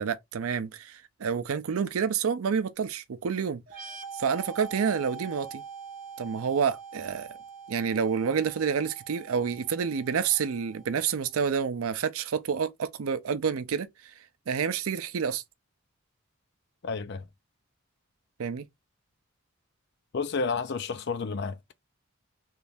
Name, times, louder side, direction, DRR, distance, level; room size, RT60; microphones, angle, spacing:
voice 1, 0.0-3.6 4.1-5.6 6.2-7.3 7.7-13.9 14.5-15.4 18.4-18.7, right 6 dB, 75° right, 0.5 m, -28 dB
sound 1, 3.7-11.2, right 6 dB, 40° right, 0.9 m, -44 dB
voice 2, 16.8-17.3 20.1-21.8, left 4 dB, 50° left, 0.4 m, -31 dB
3.2 x 2.5 x 3.3 m
head